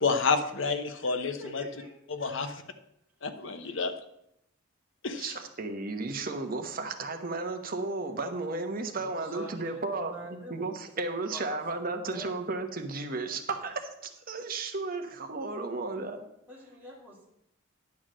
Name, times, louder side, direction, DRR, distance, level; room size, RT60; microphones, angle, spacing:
voice 1, 0.0-1.6 2.1-2.6 3.2-3.9 5.0-5.3, left 4 dB, 60° left, 8 dB, 0.9 m, -29 dB
voice 2, 0.8-1.9 2.2-2.6 3.6-3.8 9.0-12.3 16.5-17.2, equal, 10° right, -5 dB, 2.3 m, -46 dB
voice 3, 5.2-16.2, right 3 dB, 45° right, 6 dB, 1.0 m, -34 dB
10.5 x 4.8 x 7.4 m, 0.79 s
head